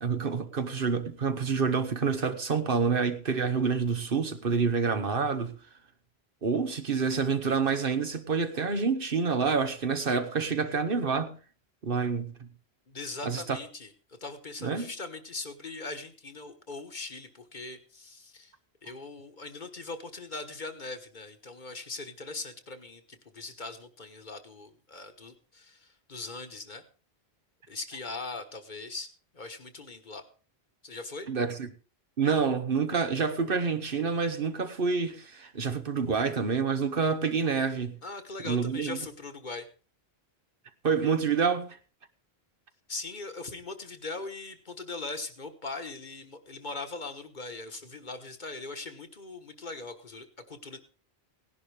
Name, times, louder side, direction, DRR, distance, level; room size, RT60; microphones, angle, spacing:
voice 1, 0.0-5.5 6.4-11.3 11.8-12.5 13.2-13.6 14.6-14.9 31.3-31.7 32.2-38.0 38.4-39.0 40.8-41.8, right 5 dB, 60° right, 1.3 m, -28 dB
voice 2, 12.9-13.9 14.2-18.5 18.8-23.0 23.3-26.8 27.7-30.2 30.8-31.3 38.0-39.7 42.9-50.8, left 3 dB, 50° left, 1.4 m, -40 dB
17.5 x 11.0 x 3.4 m
omnidirectional pair, 1.1 m